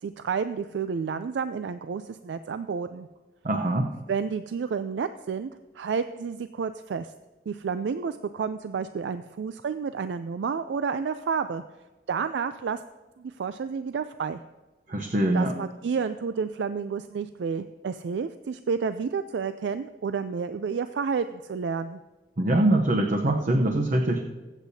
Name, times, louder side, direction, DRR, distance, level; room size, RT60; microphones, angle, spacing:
voice 1, 0.0-3.1 4.1-5.5 5.7-7.1 7.5-11.6 12.1-12.8 13.2-14.4 15.3-22.0, right 6 dB, 85° right, 11 dB, 0.4 m, -30 dB
voice 2, 3.4-3.9 14.9-15.5 22.4-24.2, right 1 dB, 50° right, 3 dB, 0.8 m, -23 dB
22.5 x 8.2 x 2.7 m, 1.2 s
head